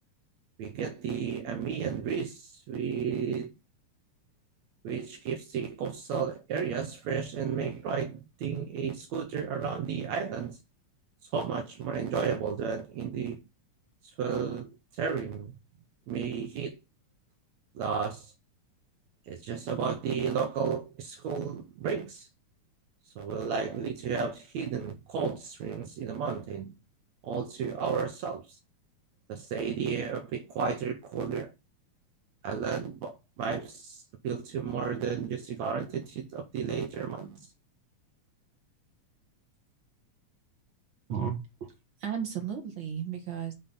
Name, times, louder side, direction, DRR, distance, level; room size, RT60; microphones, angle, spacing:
voice 1, 0.6-3.5 4.8-10.6 11.3-13.4 14.2-14.7 15.0-15.5 16.1-16.7 17.8-18.2 19.3-22.3 23.2-26.7 27.2-28.4 29.3-31.5 32.4-34.0 34.2-37.4, right 6 dB, 70° right, 2.0 m, -33 dB
voice 2, 41.1-41.7 42.0-43.5, right 8 dB, 45° right, 2.0 m, -34 dB
7.1 x 3.9 x 5.6 m
omnidirectional pair, 3.6 m